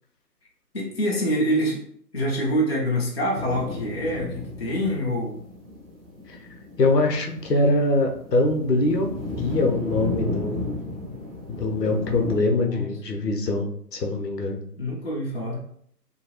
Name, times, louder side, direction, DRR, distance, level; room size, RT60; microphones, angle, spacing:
voice 1, 0.7-1.8 2.1-5.3 12.4-12.9 14.8-15.6, equal, 40° left, -3 dB, 0.4 m, -26 dB
sound 1, 3.3-12.4, left 2 dB, 40° right, 0.6 m, -34 dB
voice 2, 6.8-9.1 9.4-10.7 11.5-14.6, left 2 dB, 75° left, 2 dB, 0.8 m, -23 dB
2.8 x 2.3 x 2.8 m, 0.63 s
figure-of-eight pair, 155°, 49 cm